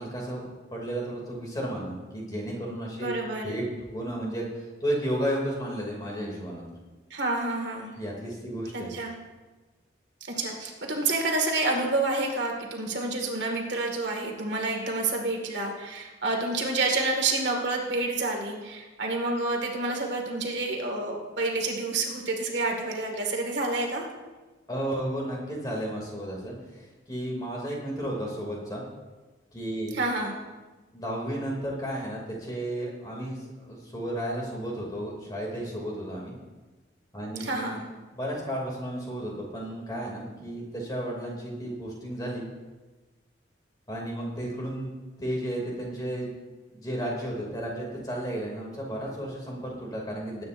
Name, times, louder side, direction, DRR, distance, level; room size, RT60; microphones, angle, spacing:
voice 1, 0.0-3.1 3.4-3.7 3.9-6.7 8.0-8.9 24.7-28.8 29.5-30.0 30.9-36.3 37.1-37.8 38.1-42.5 43.9-44.9 45.2-46.3 46.7-50.4, right 1 dB, 20° left, -2 dB, 2.7 m, -33 dB
voice 2, 3.0-3.5 7.1-7.9 8.7-9.1 10.3-24.0 29.9-30.3 37.4-37.8, right 2 dB, 70° right, 1 dB, 2.0 m, -29 dB
20.0 x 9.4 x 2.6 m, 1.2 s
head